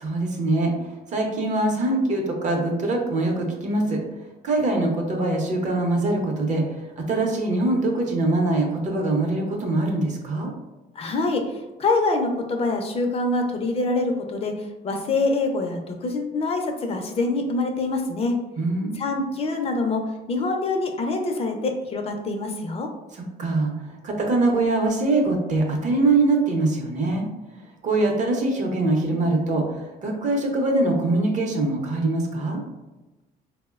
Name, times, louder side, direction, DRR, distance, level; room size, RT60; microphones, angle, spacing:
voice 1, 0.0-4.0 4.4-10.5 18.6-19.0 23.1-27.3 27.8-32.6, right 2 dB, 45° right, 2 dB, 0.6 m, -23 dB
voice 2, 11.0-14.5 14.8-18.3 18.9-20.0 20.3-22.9, left 3 dB, 35° left, 3 dB, 0.4 m, -25 dB
3.7 x 2.0 x 2.3 m, 1.1 s
cardioid pair, 110°, 17 cm